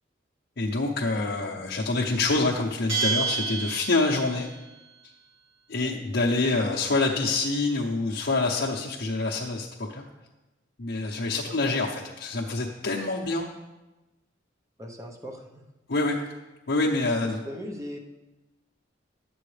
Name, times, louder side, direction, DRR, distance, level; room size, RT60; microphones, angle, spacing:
voice 1, 0.6-4.5 5.7-10.0 10.8-13.4 15.9-16.3 16.7-17.5, left 3 dB, 60° left, -3 dB, 0.8 m, -26 dB
voice 2, 1.3-1.6 5.7-6.0 11.4-11.6 14.8-15.7 17.4-18.0, equal, 15° right, 2 dB, 0.9 m, -40 dB
Bell, 2.9-4.5, right 4 dB, 85° right, 3.2 m, -29 dB
10.5 x 7.7 x 3.3 m, 1.1 s
head